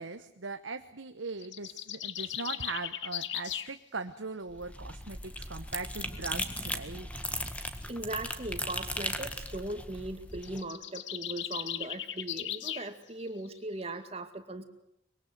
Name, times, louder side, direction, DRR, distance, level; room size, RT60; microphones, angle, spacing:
voice 1, 0.0-7.1, right 4 dB, 90° right, 7 dB, 1.2 m, -40 dB
sound 1, 1.4-3.7 10.3-12.9, left 12 dB, 70° left, 0.9 m, -37 dB
sound 2, 4.5-10.6, left 1 dB, 5° left, 1.6 m, -37 dB
voice 2, 7.9-14.6, right 2 dB, 30° right, 8 dB, 2.3 m, -39 dB
24.0 x 22.0 x 8.1 m, 0.76 s
head